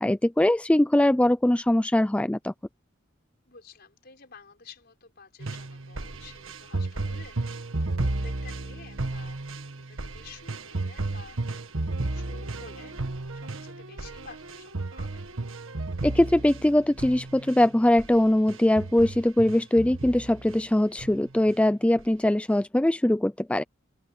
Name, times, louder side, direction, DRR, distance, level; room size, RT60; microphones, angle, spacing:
voice 1, 0.0-2.5 16.0-23.6, left 1 dB, 5° left, 0.3 m, -22 dB
voice 2, 3.5-11.4 12.1-13.0 13.3-15.2, left 5 dB, 55° left, 4.9 m, -51 dB
sound 1, 5.4-17.6 18.0-18.2 18.5-20.6 21.0-21.6 22.0-22.1, right 2 dB, 90° right, 1.5 m, -33 dB
head